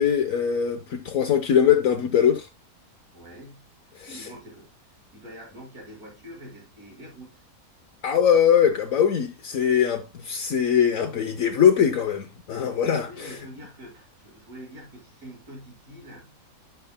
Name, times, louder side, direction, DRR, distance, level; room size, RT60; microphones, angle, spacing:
voice 1, 0.0-2.5 4.0-4.3 8.0-13.4, left 8 dB, 70° left, 1.2 m, -22 dB
voice 2, 3.1-7.5 13.0-16.7, equal, 85° right, 6.2 m, -45 dB
10.5 x 8.0 x 2.2 m
omnidirectional pair, 1.5 m